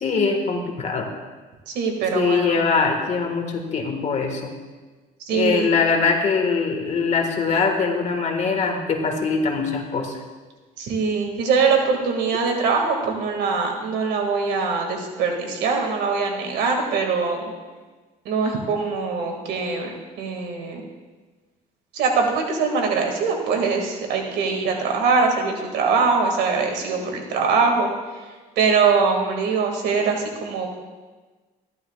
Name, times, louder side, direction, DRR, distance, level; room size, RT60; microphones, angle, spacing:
voice 1, 0.0-1.1 2.1-4.5 5.3-10.1, left 4 dB, 45° left, 3 dB, 1.7 m, -22 dB
voice 2, 1.7-2.6 5.2-5.7 10.8-17.5 18.3-20.8 21.9-27.9 28.6-30.7, right 4 dB, 80° right, 2 dB, 2.1 m, -22 dB
14.0 x 11.5 x 2.4 m, 1.3 s
cardioid pair, 110°, 17 cm